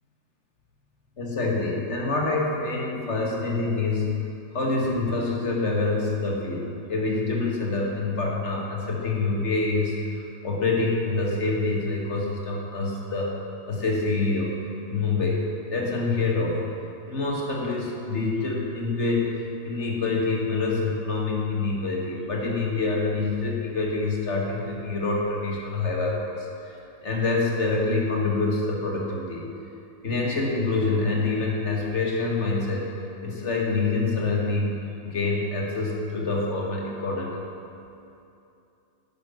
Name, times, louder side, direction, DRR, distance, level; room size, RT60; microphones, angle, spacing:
voice 1, 1.2-4.1 4.5-13.3 13.7-14.5 14.9-15.4 15.7-16.6 17.0-19.3 19.6-29.5 30.0-32.9 33.2-37.4, left 3 dB, 45° left, -2 dB, 1.7 m, -26 dB
10.0 x 5.6 x 4.1 m, 2.7 s
figure-of-eight pair, 90°, 0 cm